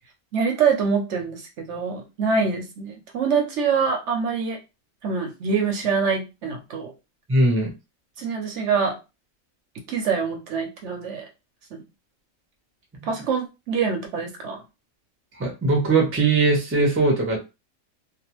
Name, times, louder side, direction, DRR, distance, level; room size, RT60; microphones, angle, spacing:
voice 1, 0.3-4.6 5.0-6.9 8.2-8.9 9.9-11.2 13.1-14.6, right 5 dB, 65° right, 3 dB, 0.9 m, -25 dB
voice 2, 7.3-7.7 13.0-13.1 15.4-17.4, right 3 dB, 15° right, 0 dB, 0.4 m, -20 dB
2.4 x 2.2 x 2.9 m, 0.26 s
omnidirectional pair, 1.4 m